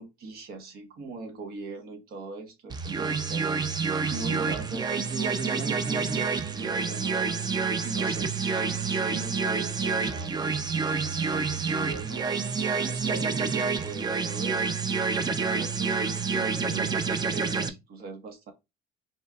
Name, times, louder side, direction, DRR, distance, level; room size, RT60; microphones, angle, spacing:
voice 1, 0.0-7.2 7.8-12.3 12.7-14.8 15.2-18.5, right 3 dB, 65° right, 1.3 m, -41 dB
sound 1, 2.7-17.7, right 5 dB, 25° right, 0.5 m, -28 dB
5.4 x 3.3 x 2.3 m
cardioid pair, 110°, 17 cm